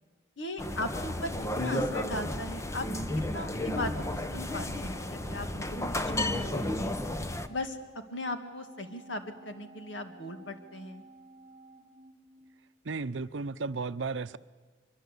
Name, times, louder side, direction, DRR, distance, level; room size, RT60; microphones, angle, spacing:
voice 1, 0.4-1.3 1.6-2.9 3.3-7.0 7.5-7.8 8.1-11.0, left 1 dB, 75° left, 8 dB, 2.0 m, -38 dB
sound 1, 0.6-7.5, left 1 dB, 15° left, 0.9 m, -33 dB
Organ, 1.7-12.9, right 2 dB, 50° right, 1.3 m, -54 dB
voice 2, 12.8-14.4, right 4 dB, 75° right, 15 dB, 0.7 m, -34 dB
23.5 x 23.0 x 8.3 m, 1.4 s
head